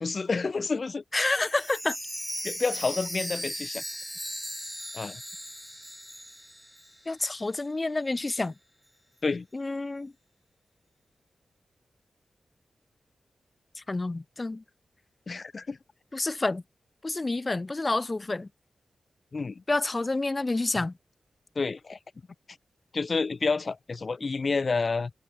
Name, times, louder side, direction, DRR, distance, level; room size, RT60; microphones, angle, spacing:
voice 1, 0.0-1.0 2.4-3.8 4.9-5.2 9.2-9.5 15.3-15.8 19.3-19.6 20.8-20.9 21.6-22.0 22.9-25.1, left 4 dB, 40° left, 0.9 m, -29 dB
voice 2, 1.1-2.0 7.1-8.5 9.5-10.1 13.9-14.6 16.1-16.6 17.0-18.5 19.7-20.9, left 2 dB, 20° left, 0.5 m, -28 dB
Chime, 1.2-7.1 7.5-7.6 8.1-8.2, equal, ahead, 1.3 m, -38 dB
wide cardioid pair, 160°, 0 cm